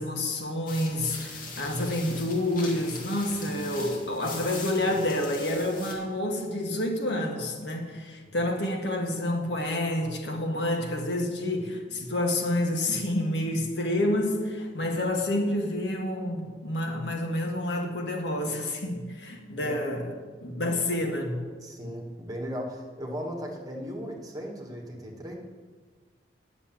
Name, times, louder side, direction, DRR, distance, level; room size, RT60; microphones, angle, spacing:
voice 1, 0.0-20.1 20.4-21.4, left 1 dB, 70° left, 2 dB, 1.7 m, -28 dB
sound 1, 0.7-5.9, left 3 dB, 50° left, 2.1 m, -41 dB
voice 2, 21.6-25.3, equal, 20° right, 0 dB, 1.7 m, -37 dB
10.0 x 7.0 x 7.5 m, 1.5 s
head